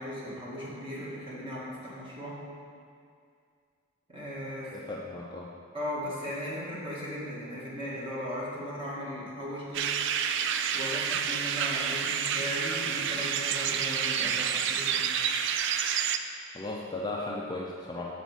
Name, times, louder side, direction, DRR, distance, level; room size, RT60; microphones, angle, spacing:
voice 1, 0.0-2.4 4.1-4.7 5.7-9.9 10.7-15.1, equal, 25° right, -7 dB, 1.8 m, -37 dB
voice 2, 4.7-5.5 16.5-18.1, left 2 dB, 20° left, -3 dB, 0.5 m, -36 dB
sound 1, 9.7-16.2, right 8 dB, 60° right, 0.3 m, -29 dB
7.0 x 4.1 x 6.2 m, 2.3 s
head